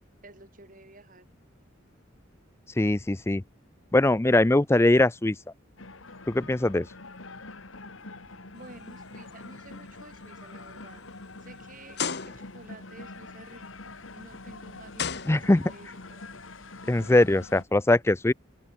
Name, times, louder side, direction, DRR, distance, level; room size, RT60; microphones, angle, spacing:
voice 1, 0.2-1.3 8.5-11.0 11.4-16.4, right 2 dB, 40° right, 5.5 m, -51 dB
voice 2, 2.8-3.4 3.9-5.4 6.3-6.9 15.3-15.6 16.9-18.3, left 2 dB, 15° left, 0.4 m, -21 dB
sound 1, 5.8-17.6, left 3 dB, 85° left, 2.5 m, -45 dB
sound 2, 8.8-9.1 9.6-9.8 10.5-10.6 11.9-12.7 14.2-14.3 14.9-15.9, left 6 dB, 55° left, 1.4 m, -33 dB
open air
head